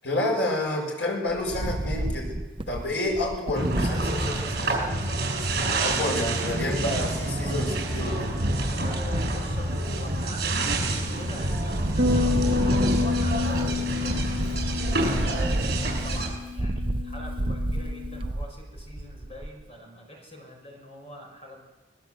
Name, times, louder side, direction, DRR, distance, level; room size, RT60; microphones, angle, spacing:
voice 1, 0.0-2.4 2.7-4.9 5.5-8.3, left 1 dB, 80° left, -1 dB, 7.0 m, -29 dB
Wind, 1.3-4.4 4.9-5.0 5.2-5.6 7.1-7.7 8.2-8.7 9.0-10.2 10.6-11.1 11.4-19.6, right 1 dB, 30° right, 0.7 m, -31 dB
sound 1, 3.5-16.3, right 2 dB, 60° right, 7.2 m, -28 dB
voice 2, 7.9-8.5 8.7-14.2 14.8-21.6, left 1 dB, 35° left, 1 dB, 6.0 m, -44 dB
Bass guitar, 12.0-18.2, left 5 dB, 75° right, 1.3 m, -30 dB
21.5 x 21.0 x 8.0 m, 1.2 s
head